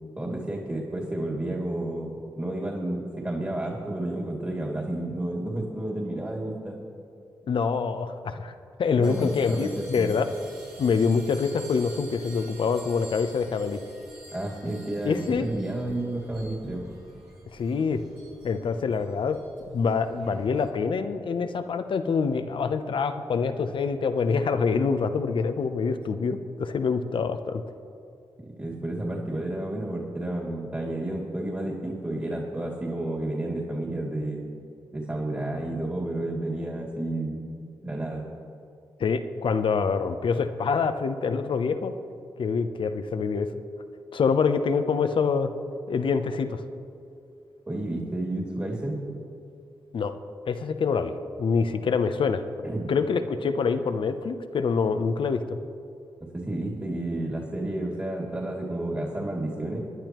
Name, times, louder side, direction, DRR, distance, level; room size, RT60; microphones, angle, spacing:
voice 1, 0.2-6.8 8.9-10.1 14.3-16.9 28.6-34.4 34.9-37.4 37.8-38.2 47.7-49.0 52.6-52.9 56.3-59.8, right 1 dB, 25° right, -2 dB, 2.6 m, -31 dB
voice 2, 7.5-8.5 8.8-10.3 10.8-13.8 15.0-15.5 17.5-18.0 18.4-19.4 19.7-27.6 39.0-41.9 42.4-43.5 44.1-45.5 45.9-46.6 49.9-50.1 50.5-52.4 52.9-55.6, left 5 dB, 70° left, 9 dB, 0.8 m, -25 dB
sound 1, 9.0-20.7, right 1 dB, 90° right, 3.4 m, -47 dB
20.5 x 10.0 x 3.1 m, 2.6 s
supercardioid pair, 40°, 9 cm